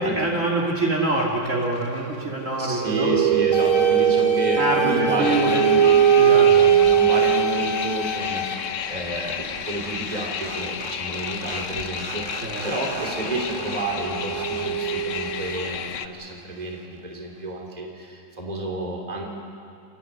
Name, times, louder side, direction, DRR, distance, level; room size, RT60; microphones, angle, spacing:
voice 1, 0.0-3.1 4.6-5.6 6.1-6.5 12.4-12.6, right 2 dB, 35° right, -2 dB, 3.1 m, -25 dB
voice 2, 2.6-6.2 6.5-19.3, right 1 dB, 20° right, 0 dB, 3.0 m, -30 dB
sound 1, 2.6-7.9 9.8-9.9 10.1-15.6, right 10 dB, 55° right, 0.9 m, -21 dB
sound 2, 3.5-8.5, left 6 dB, 90° left, 2.6 m, -29 dB
sound 3, 5.2-16.1, left 8 dB, 60° left, 0.8 m, -32 dB
28.5 x 14.0 x 9.7 m, 2.5 s
omnidirectional pair, 2.2 m